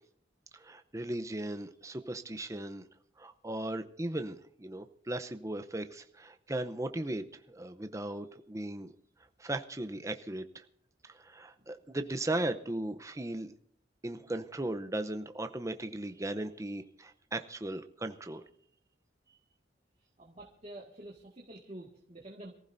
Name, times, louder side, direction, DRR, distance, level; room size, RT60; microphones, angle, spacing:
voice 1, 0.5-2.9 3.2-8.9 9.4-10.6 11.0-13.5 14.0-18.4, right 1 dB, 15° right, 8 dB, 0.7 m, -37 dB
voice 2, 20.2-22.5, right 1 dB, 35° right, -2 dB, 1.8 m, -48 dB
26.5 x 15.0 x 2.7 m, 0.62 s
head